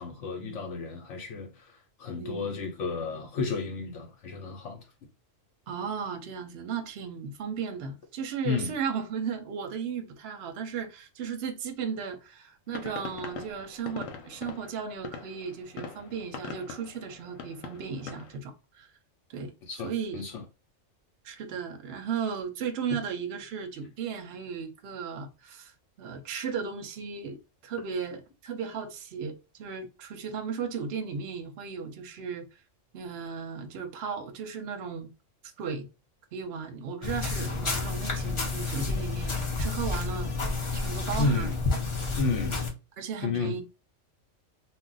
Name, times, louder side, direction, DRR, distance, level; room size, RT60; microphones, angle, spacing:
voice 1, 0.0-4.8 8.4-8.8 19.7-20.4 22.9-23.0 41.2-41.5 42.2-42.6 43.2-43.6, left 4 dB, 70° left, 1.1 m, -32 dB
voice 2, 5.7-18.9 19.3-19.5 19.8-20.2 21.2-25.7 26.0-32.5 32.9-35.1 35.6-35.9 36.3-40.3 40.7-41.6 43.0-43.6, right 6 dB, 65° right, 0.8 m, -35 dB
sound 1, 12.7-18.4, left 5 dB, 85° left, 1.0 m, -42 dB
sound 2, 37.0-42.7, left 3 dB, 45° left, 0.4 m, -30 dB
2.4 x 2.1 x 3.8 m
omnidirectional pair, 1.3 m